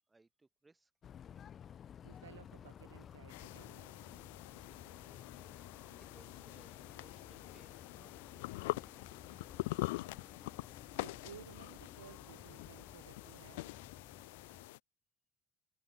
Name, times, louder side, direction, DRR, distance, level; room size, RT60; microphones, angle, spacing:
voice 1, 0.1-0.9 1.3-1.4 4.6-4.7 6.0-8.1 8.4-8.9, right 3 dB, 20° right, 6.4 m, -66 dB
sound 1, 1.0-14.7, left 9 dB, 45° left, 1.1 m, -55 dB
voice 2, 2.0-4.0 10.9-13.7, right 9 dB, 80° right, 2.0 m, -57 dB
sound 2, 3.3-14.8, left 21 dB, 70° left, 0.8 m, -45 dB
figure-of-eight pair, 55°, 0 cm